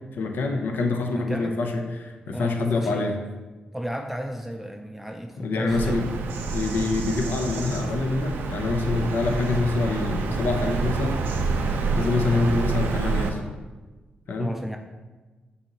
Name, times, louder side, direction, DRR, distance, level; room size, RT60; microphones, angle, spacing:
voice 1, 0.2-3.2 5.4-6.1 6.5-11.4 11.9-13.4 14.3-14.6, left 3 dB, 75° left, 4 dB, 0.5 m, -26 dB
voice 2, 1.1-1.5 2.3-3.1 3.7-6.0 14.4-14.8, equal, 5° right, 3 dB, 0.3 m, -33 dB
Bird vocalization bird call bird song, 5.7-13.3, right 4 dB, 90° right, 0.4 m, -27 dB
6.2 x 2.7 x 2.9 m, 1.3 s
cardioid pair, 60°, 3 cm